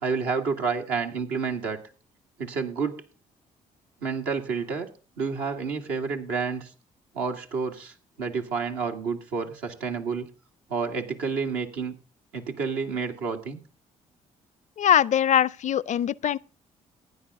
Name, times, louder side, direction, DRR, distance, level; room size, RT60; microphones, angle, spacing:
voice 1, 0.0-1.8 2.4-3.0 4.0-4.9 5.2-6.7 7.1-10.3 10.7-12.0 12.3-13.6, right 5 dB, 80° right, 2.0 m, -29 dB
voice 2, 14.8-16.4, left 9 dB, 50° left, 0.5 m, -22 dB
15.5 x 10.0 x 3.6 m
hypercardioid pair, 55°, 16 cm